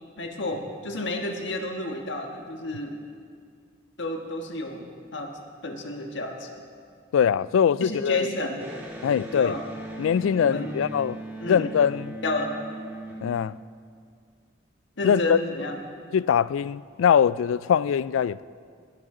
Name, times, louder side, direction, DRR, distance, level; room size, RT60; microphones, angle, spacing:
voice 1, 0.2-3.0 4.0-5.3 5.6-6.5 7.8-8.6 9.3-9.6 10.3-10.7 11.4-11.7 12.2-12.5 15.0-15.8, left 1 dB, 70° left, 1.5 m, -31 dB
voice 2, 7.1-8.3 9.0-9.5 10.0-11.2 11.5-12.2 13.2-13.5 15.0-15.4 16.1-18.4, left 8 dB, 90° left, 0.3 m, -22 dB
Electric guitar, 8.6-14.1, right 2 dB, 10° right, 1.5 m, -39 dB
20.5 x 13.0 x 3.8 m
head